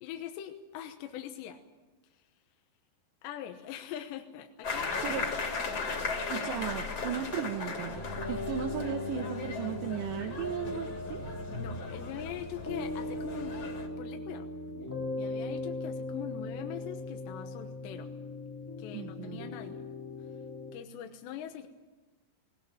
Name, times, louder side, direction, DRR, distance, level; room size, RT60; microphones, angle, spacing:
voice 1, 0.0-1.6 3.2-5.5 6.1-6.3 11.5-13.6 14.0-14.5 15.2-18.1 18.8-19.8 20.7-21.7, left 10 dB, 80° left, 5 dB, 3.3 m, -42 dB
sound 1, 4.6-13.9, left 4 dB, 40° left, 3.3 m, -37 dB
voice 2, 6.3-8.0 8.3-11.2 18.9-19.5, right 9 dB, 80° right, 4 dB, 3.2 m, -36 dB
sound 2, 7.9-20.7, left 2 dB, 10° left, 1.0 m, -39 dB
19.5 x 19.5 x 9.0 m, 1.2 s
omnidirectional pair, 5.1 m